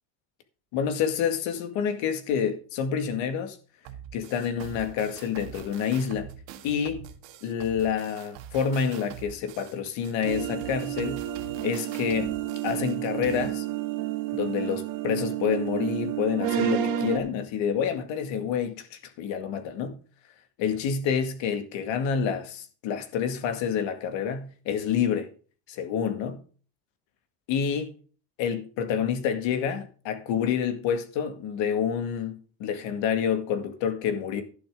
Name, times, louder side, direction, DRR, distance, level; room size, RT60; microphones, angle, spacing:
voice 1, 0.7-3.6 4.1-6.3 6.6-7.0 7.4-11.2 11.6-12.3 12.6-13.7 14.3-20.0 20.6-25.3 25.7-26.4 27.5-27.9 28.4-34.4, left 7 dB, 65° left, 2.2 m, -28 dB
sound 1, 3.9-13.5, right 9 dB, 60° right, 1.7 m, -44 dB
sound 2, 10.2-17.2, right 11 dB, 85° right, 2.3 m, -30 dB
11.5 x 10.5 x 3.8 m
cardioid pair, 160°, 50 cm